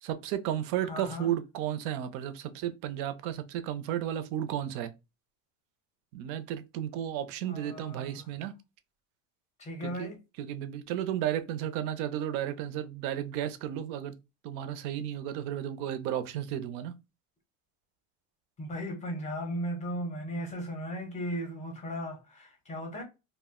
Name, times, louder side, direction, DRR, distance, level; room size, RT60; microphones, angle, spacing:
voice 1, 0.0-4.9 6.1-8.5 9.8-10.1 10.4-14.1 14.4-16.9, right 11 dB, 65° right, 0.5 m, -33 dB
voice 2, 0.8-1.3 7.4-8.2 9.6-10.2 18.6-23.0, equal, 15° left, 0.6 m, -36 dB
2.4 x 2.1 x 3.5 m
cardioid pair, 165°, 42 cm